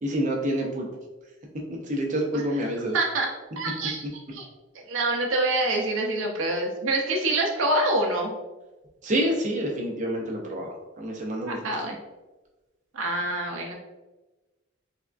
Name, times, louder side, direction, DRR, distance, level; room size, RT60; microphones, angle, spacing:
voice 1, 0.0-0.9 1.9-3.0 9.0-11.6, right 1 dB, 40° right, 1 dB, 0.6 m, -27 dB
voice 2, 2.9-3.3 3.6-4.4 4.7-8.3 11.5-12.0 12.9-13.7, right 2 dB, 85° right, 0 dB, 0.5 m, -26 dB
3.4 x 2.3 x 2.4 m, 1.1 s
head